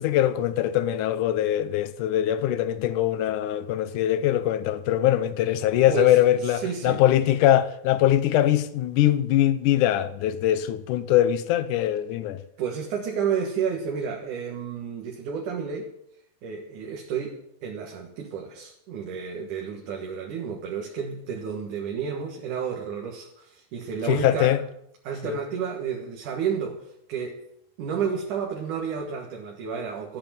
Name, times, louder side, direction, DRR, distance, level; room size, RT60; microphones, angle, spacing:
voice 1, 0.0-12.4 24.1-24.6 25.2-25.4, left 12 dB, 85° left, 2.4 m, -22 dB
voice 2, 5.9-7.0 12.6-15.9 16.4-24.6 25.0-27.4 27.8-30.2, right 7 dB, 80° right, 3.1 m, -31 dB
14.5 x 8.3 x 8.9 m
omnidirectional pair, 3.5 m